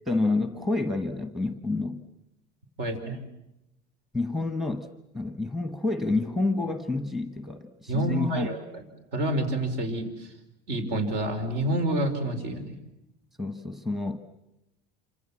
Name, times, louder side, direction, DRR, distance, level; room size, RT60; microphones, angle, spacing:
voice 1, 0.1-2.0 4.1-8.5 13.4-14.2, left 2 dB, ahead, 8 dB, 1.2 m, -29 dB
voice 2, 2.8-3.2 7.9-8.8 9.1-10.3 10.7-12.8, right 1 dB, 65° right, 8 dB, 4.9 m, -28 dB
27.5 x 26.0 x 7.4 m, 0.87 s
cardioid pair, 155°, 20 cm